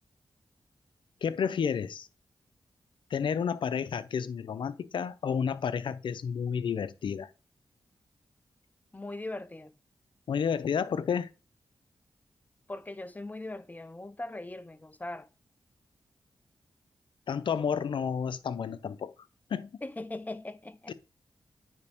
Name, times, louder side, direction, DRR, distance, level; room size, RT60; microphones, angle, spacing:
voice 1, 1.2-2.1 3.1-7.3 10.3-11.3 17.3-19.1 19.5-19.7 20.9-21.0, left 7 dB, 80° left, 0.7 m, -31 dB
voice 2, 8.9-9.7 12.7-15.3 19.8-20.9, left 2 dB, 20° left, 0.8 m, -40 dB
9.5 x 5.1 x 3.6 m
cardioid pair, 55°, 8 cm